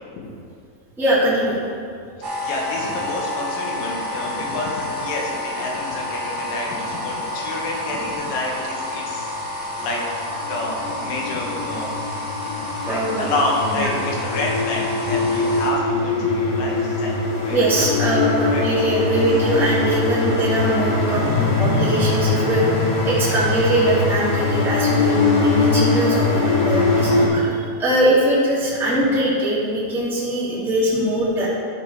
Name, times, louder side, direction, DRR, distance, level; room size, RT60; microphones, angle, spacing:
voice 1, 1.0-1.6 12.8-13.3 13.7-13.9 17.5-31.5, right 1 dB, ahead, -9 dB, 0.8 m, -21 dB
sound 1, 2.2-15.7, left 1 dB, 75° right, 1.1 m, -29 dB
voice 2, 2.4-10.0 10.5-12.0 12.6-17.2 17.4-17.9 18.5-18.7 27.3-27.6, left 2 dB, 70° left, -2 dB, 2.9 m, -28 dB
sound 2, 9.1-9.2 9.8-27.3, left 3 dB, 85° left, 3.6 m, -22 dB
12.0 x 4.7 x 4.7 m, 2.3 s
omnidirectional pair, 4.5 m